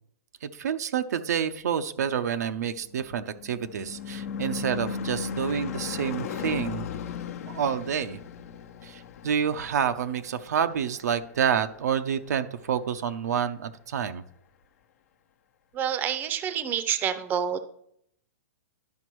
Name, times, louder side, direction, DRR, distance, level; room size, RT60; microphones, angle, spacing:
voice 1, 0.4-6.9 7.5-8.2 8.8-14.2, right 8 dB, 80° right, 9 dB, 0.6 m, -28 dB
Car passing by / Truck / Engine, 2.8-11.5, left 6 dB, 65° left, 0.8 m, -36 dB
voice 2, 15.7-17.6, right 9 dB, 20° right, 11 dB, 0.6 m, -28 dB
11.5 x 5.2 x 3.1 m, 0.70 s
hypercardioid pair, 145°, 9 cm